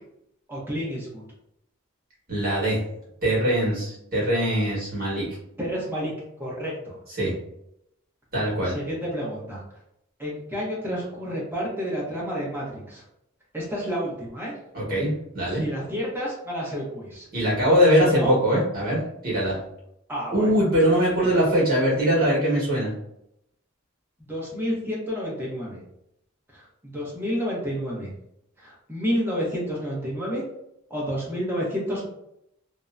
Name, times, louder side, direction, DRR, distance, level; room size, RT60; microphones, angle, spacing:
voice 1, 0.5-1.2 5.6-6.1 6.4-7.0 8.6-9.6 10.2-13.0 13.5-14.5 15.5-17.3 18.0-18.4 20.1-20.5 21.2-21.3 24.3-25.8 26.5-28.1 28.6-30.4 30.9-32.1, equal, 10° right, -5 dB, 0.8 m, -30 dB
voice 2, 2.3-2.8 3.2-5.2 7.2-7.3 8.3-8.7 14.7-15.6 17.3-19.6 20.3-22.9, equal, 45° right, -5 dB, 1.2 m, -22 dB
2.7 x 2.1 x 2.4 m, 0.80 s
head